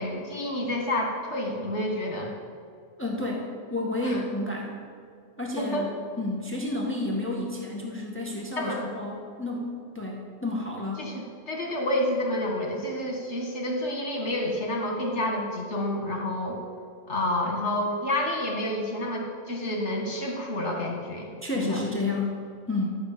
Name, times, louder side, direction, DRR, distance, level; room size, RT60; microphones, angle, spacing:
voice 1, 0.0-2.3 4.0-4.2 5.6-5.8 8.6-8.8 11.0-16.6 17.1-21.8, left 1 dB, 55° left, -1 dB, 2.2 m, -29 dB
voice 2, 3.0-4.7 5.4-5.9 6.2-11.1 21.4-22.9, left 2 dB, 10° left, -2 dB, 1.5 m, -31 dB
12.5 x 6.7 x 8.5 m, 2.4 s
omnidirectional pair, 1.4 m